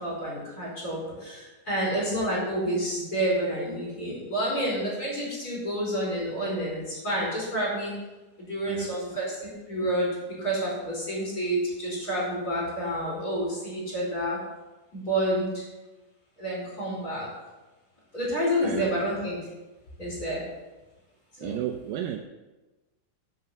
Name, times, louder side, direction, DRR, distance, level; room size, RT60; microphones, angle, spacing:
voice 1, 0.0-7.9 8.4-14.4 14.9-15.6 16.4-17.3 18.1-19.4 20.0-20.4 21.4-21.6, right 1 dB, 25° left, -5 dB, 4.7 m, -29 dB
voice 2, 8.7-9.0 18.6-19.0 21.4-22.2, right 11 dB, 80° right, 5 dB, 2.2 m, -33 dB
10.5 x 6.8 x 6.7 m, 1.1 s
omnidirectional pair, 4.4 m